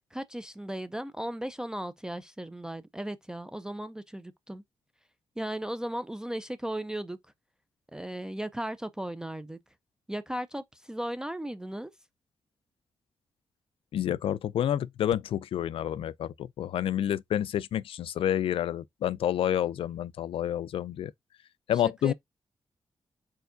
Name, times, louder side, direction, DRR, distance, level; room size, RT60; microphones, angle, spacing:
voice 1, 0.1-4.6 5.4-7.2 7.9-9.6 10.1-11.9 22.0-22.1, right 1 dB, 5° right, 0.3 m, -36 dB
voice 2, 13.9-21.1 21.7-22.1, left 10 dB, 85° left, 0.4 m, -29 dB
4.7 x 4.5 x 2.5 m
wide cardioid pair, 175°, 9 cm